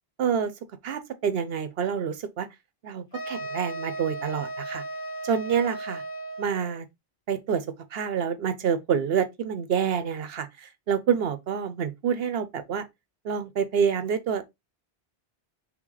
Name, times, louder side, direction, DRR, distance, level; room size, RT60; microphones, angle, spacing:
voice 1, 0.2-0.5 0.8-2.5 2.8-4.8 5.2-6.0 6.4-6.9 7.3-7.6 7.9-12.8 13.2-14.4, right 7 dB, 65° right, 0.9 m, -27 dB
sound 1, 3.1-6.8, right 2 dB, 55° left, 1.0 m, -36 dB
5.9 x 2.1 x 3.9 m
omnidirectional pair, 1.1 m